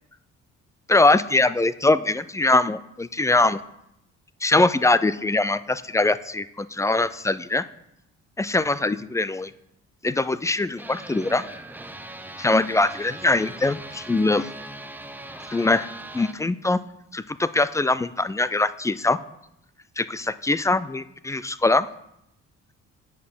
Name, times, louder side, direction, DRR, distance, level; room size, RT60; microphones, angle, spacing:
voice 1, 0.9-3.6 4.4-7.6 8.4-9.5 10.0-11.4 12.4-14.5 15.5-15.9 16.1-16.8 17.1-19.2 20.0-21.9, left 2 dB, 10° left, 16 dB, 0.3 m, -22 dB
sound 1, 10.8-16.3, right 1 dB, 5° right, 0.7 m, -40 dB
8.6 x 6.8 x 5.5 m, 0.82 s
cardioid pair, 90°, 30 cm